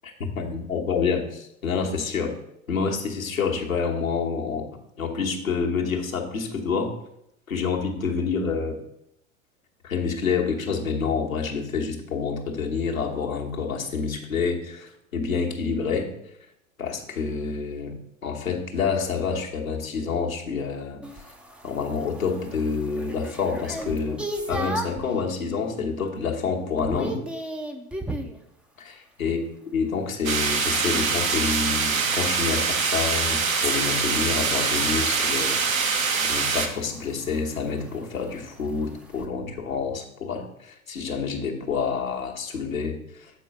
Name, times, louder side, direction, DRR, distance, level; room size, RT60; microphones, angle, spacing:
voice 1, 0.0-2.3 2.7-4.7 5.0-7.0 7.5-8.8 9.8-16.1 16.8-18.0 18.2-21.0 21.6-27.2 28.8-29.4 29.7-36.0 36.2-43.3, left 5 dB, 85° left, 0 dB, 1.2 m, -28 dB
sound 1, 21.0-25.1 25.6-26.0 26.3-28.4 30.9-39.3, right 1 dB, 5° right, 0.4 m, -38 dB
sound 2, 30.2-36.7, right 5 dB, 80° right, 1.0 m, -24 dB
7.5 x 4.5 x 5.2 m, 0.80 s
figure-of-eight pair, 80°, 40 cm